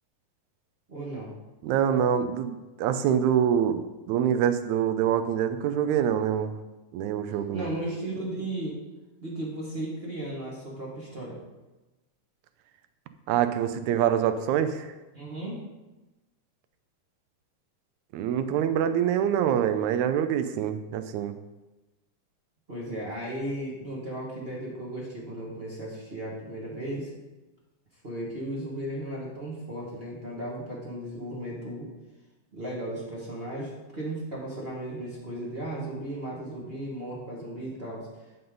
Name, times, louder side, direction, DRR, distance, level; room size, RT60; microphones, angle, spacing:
voice 1, 0.9-1.3 7.5-8.8 9.2-11.4 15.1-15.6 22.7-27.1 28.0-31.9 32.5-38.1, right 1 dB, 25° right, -4 dB, 1.3 m, -35 dB
voice 2, 1.6-6.5 6.9-7.7 13.3-14.9 18.1-21.3, right 9 dB, 75° right, 10 dB, 1.8 m, -25 dB
13.5 x 5.4 x 3.8 m, 1.1 s
omnidirectional pair, 3.7 m